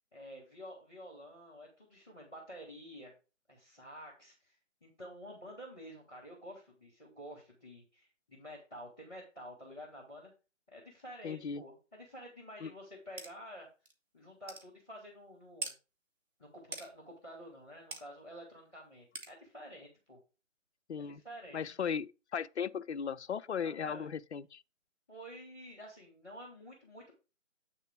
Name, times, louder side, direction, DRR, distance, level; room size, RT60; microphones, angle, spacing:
voice 1, 0.1-3.1 3.5-10.3 10.7-13.7 14.1-15.7 16.4-20.2 21.0-21.7 23.6-24.1 25.1-27.1, equal, 5° left, 0.8 m, -50 dB
voice 2, 11.2-11.6 12.6-12.7 20.9-21.2 21.5-24.6, left 7 dB, 60° left, 0.5 m, -37 dB
sound 1, 13.2-13.3 13.9-14.0 14.5-14.7 15.6-15.8 16.7-16.9 17.9-18.0 19.1-19.3, right 4 dB, 55° right, 2.2 m, -41 dB
8.5 x 3.6 x 5.1 m
figure-of-eight pair, 155°, 39 cm